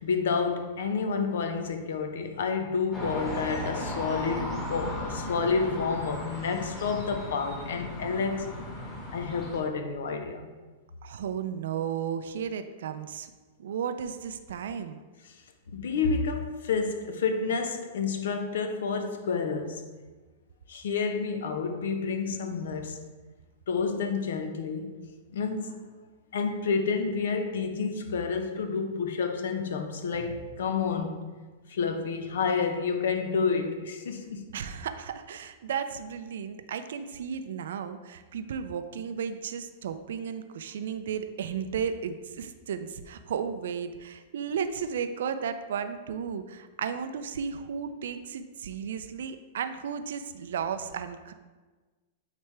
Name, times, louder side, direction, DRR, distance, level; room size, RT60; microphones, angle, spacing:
voice 1, 0.0-8.5 9.1-10.5 15.7-19.9 20.7-23.1 23.7-25.0 25.3-25.9 26.3-31.2 31.7-34.5, left 5 dB, 80° left, 0.7 m, -29 dB
sound 1, 2.9-9.6, left 1 dB, 20° left, 1.6 m, -36 dB
voice 2, 11.0-13.3 13.6-15.0 34.5-51.3, right 7 dB, 80° right, 0.4 m, -34 dB
8.7 x 3.3 x 3.3 m
hypercardioid pair, 145°, 0 cm